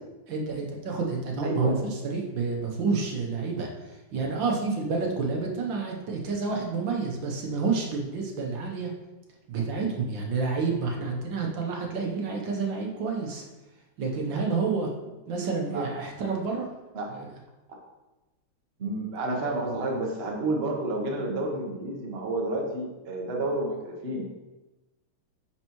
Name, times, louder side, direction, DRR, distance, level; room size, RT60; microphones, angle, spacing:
voice 1, 0.3-8.9 9.5-13.4 14.0-14.9 15.3-16.7 17.1-17.3, right 4 dB, 65° right, 0 dB, 1.5 m, -29 dB
voice 2, 1.4-1.8 15.7-15.9 16.9-17.1 18.8-24.2, right 2 dB, 40° right, -1 dB, 1.0 m, -30 dB
10.0 x 4.4 x 3.0 m, 1.1 s
omnidirectional pair, 2.3 m